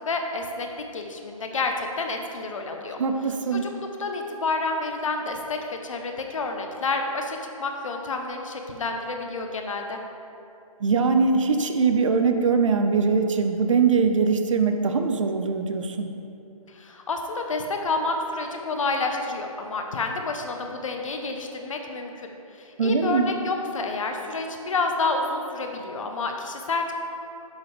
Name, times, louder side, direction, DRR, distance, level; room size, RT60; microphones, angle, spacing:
voice 1, 0.0-3.0 3.5-10.0 16.7-22.3 22.5-26.9, left 3 dB, 60° left, 3 dB, 1.0 m, -29 dB
voice 2, 3.0-3.6 10.8-16.1 22.8-23.3, right 5 dB, 60° right, 6 dB, 0.7 m, -22 dB
8.0 x 7.4 x 3.4 m, 2.7 s
figure-of-eight pair, 145°, 19 cm